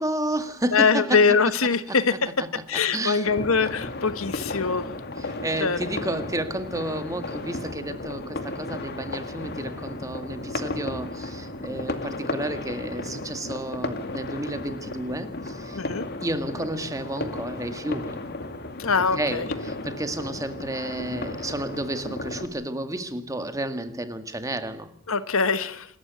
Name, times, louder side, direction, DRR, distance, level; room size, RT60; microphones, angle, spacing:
voice 1, 0.0-1.3 1.9-2.0 2.2-3.3 5.2-15.8 16.2-18.2 19.1-24.9, right 1 dB, 15° right, 1.8 m, -31 dB
voice 2, 0.7-2.3 2.7-4.9 5.6-5.8 15.7-16.1 18.8-19.4 25.1-25.9, left 5 dB, 85° left, 1.4 m, -23 dB
sound 1, 3.2-22.5, left 2 dB, 50° left, 2.2 m, -34 dB
27.0 x 13.5 x 9.3 m
head